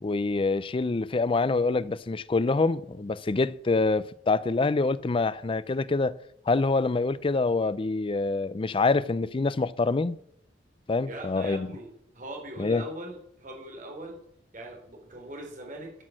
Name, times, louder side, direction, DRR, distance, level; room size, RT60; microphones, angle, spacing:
voice 1, 0.0-6.2 6.5-10.2 10.9-11.7 12.6-12.8, left 3 dB, 30° left, 0.4 m, -26 dB
voice 2, 11.0-14.2 14.5-15.9, right 1 dB, 45° right, 3.3 m, -41 dB
13.0 x 6.3 x 6.3 m
head